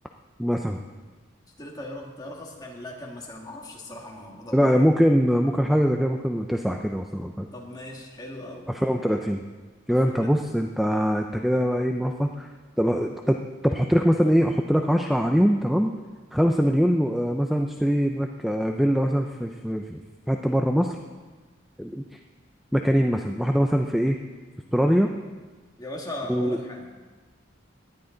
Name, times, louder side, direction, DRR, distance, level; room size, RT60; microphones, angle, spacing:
voice 1, 0.4-0.8 4.5-7.5 8.7-9.4 9.9-12.5 12.8-15.9 16.3-21.0 21.8-22.2 22.7-24.2 24.7-25.1 26.3-26.6, equal, ahead, 3 dB, 0.5 m, -23 dB
voice 2, 1.6-4.7 7.5-8.7 9.9-10.2 23.7-23.8 25.8-26.9, left 1 dB, 20° left, -1 dB, 2.1 m, -38 dB
18.5 x 11.0 x 3.9 m, 1.4 s
head